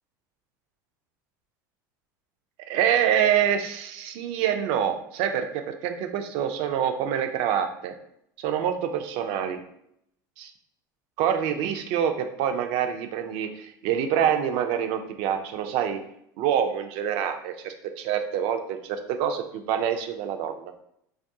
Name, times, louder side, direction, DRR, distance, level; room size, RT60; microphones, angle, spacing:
voice 1, 2.7-7.9 8.4-9.6 10.4-10.5 11.2-16.0 16.4-20.8, right 9 dB, 60° right, 7 dB, 0.4 m, -26 dB
2.3 x 2.2 x 2.7 m, 0.75 s
hypercardioid pair, 85°, 11 cm